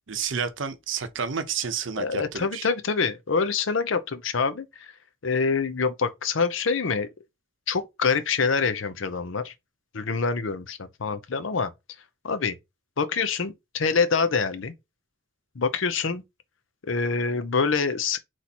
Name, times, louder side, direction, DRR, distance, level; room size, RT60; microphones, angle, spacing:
voice 1, 0.1-2.7, right 6 dB, 70° right, 0.7 m, -30 dB
voice 2, 2.0-4.9 5.2-7.1 7.7-9.5 9.9-11.7 12.2-12.6 13.0-14.7 15.6-16.2 16.9-18.2, left 5 dB, 75° left, 0.6 m, -25 dB
4.1 x 3.1 x 4.2 m
head